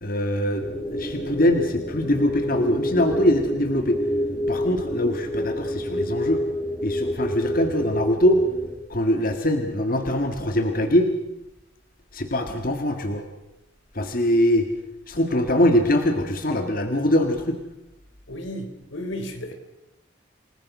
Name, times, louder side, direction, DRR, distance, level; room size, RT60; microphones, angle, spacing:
voice 1, 0.0-4.0 4.5-6.4 6.8-8.4 8.9-11.1 12.1-13.2 13.9-14.7 15.1-17.6, left 1 dB, 45° left, 5 dB, 1.9 m, -22 dB
sound 1, 0.6-8.7, equal, 20° left, 2.9 m, -28 dB
voice 2, 18.3-19.5, left 1 dB, 85° left, 6 dB, 3.7 m, -33 dB
28.5 x 19.5 x 6.2 m, 0.88 s
head